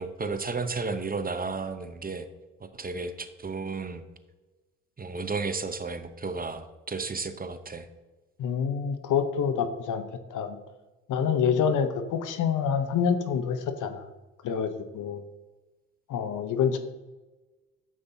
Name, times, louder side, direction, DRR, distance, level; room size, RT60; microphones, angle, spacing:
voice 1, 0.0-2.3 2.6-4.0 5.0-7.9, right 4 dB, 25° right, 10 dB, 0.8 m, -33 dB
voice 2, 8.4-10.0 10.3-10.6 11.1-14.0 14.4-15.2 16.1-16.8, left 7 dB, 65° left, 9 dB, 0.9 m, -27 dB
9.7 x 7.4 x 2.8 m, 1.2 s
hypercardioid pair, 50°, 33 cm